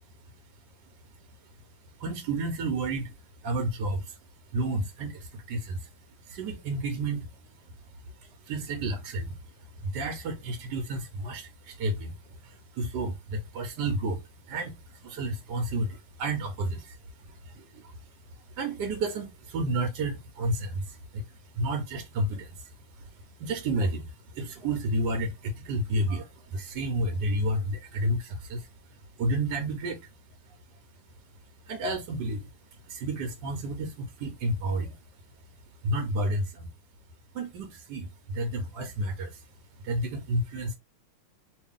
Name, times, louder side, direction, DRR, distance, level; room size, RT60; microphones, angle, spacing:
voice 1, 2.0-3.2 3.4-4.2 4.5-5.9 6.3-7.3 8.2-18.0 18.3-30.1 30.4-30.5 31.7-32.5 32.8-35.0 35.8-36.7 37.3-39.4 39.8-40.7, right 1 dB, 65° right, 1.1 m, -31 dB
3.2 x 2.6 x 3.5 m
omnidirectional pair, 2.3 m